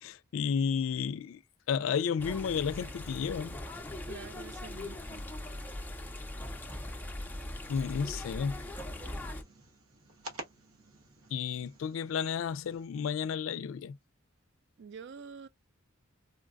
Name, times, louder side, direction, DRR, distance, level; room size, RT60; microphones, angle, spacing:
voice 1, 0.0-1.4 1.7-3.6 7.7-8.6 11.3-14.0, left 7 dB, 65° left, 0.3 m, -32 dB
sound 1, 2.2-9.4, left 1 dB, 10° left, 0.5 m, -40 dB
voice 2, 4.0-5.2 5.5-5.7 14.8-15.5, right 6 dB, 55° right, 0.3 m, -47 dB
sound 2, 7.4-12.9, right 1 dB, 85° right, 1.1 m, -51 dB
4.0 x 2.2 x 2.4 m
head